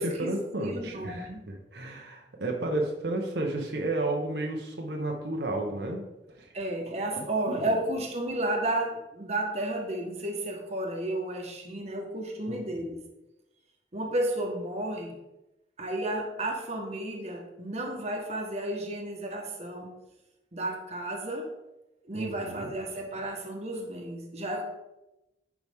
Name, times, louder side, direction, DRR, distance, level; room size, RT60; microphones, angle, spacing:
voice 1, 0.0-6.0 6.4-6.5 7.2-7.6 12.5-12.8 22.1-22.7, right 2 dB, 70° right, 1 dB, 1.0 m, -32 dB
voice 2, 0.6-1.5 6.5-13.0 13.9-15.1 15.8-19.9 20.5-21.5 22.1-24.6, right 1 dB, 40° right, 1 dB, 1.3 m, -32 dB
10.5 x 5.0 x 3.6 m, 0.95 s
head